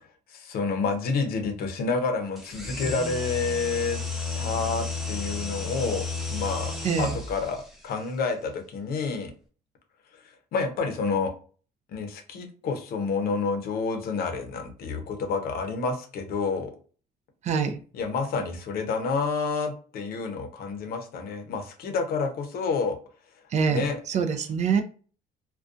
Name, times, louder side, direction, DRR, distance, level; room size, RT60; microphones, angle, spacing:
voice 1, 0.3-4.0 4.4-6.0 6.3-9.3 10.5-11.3 11.9-16.7 17.9-23.0 23.7-24.0, left 4 dB, 65° left, 0.6 m, -29 dB
sound 1, 2.4-7.6, left 4 dB, ahead, 0.6 m, -32 dB
voice 2, 6.8-7.2 17.4-17.8 23.5-24.8, right 6 dB, 45° right, 0.4 m, -25 dB
2.3 x 2.2 x 2.5 m
cardioid pair, 110°, 17 cm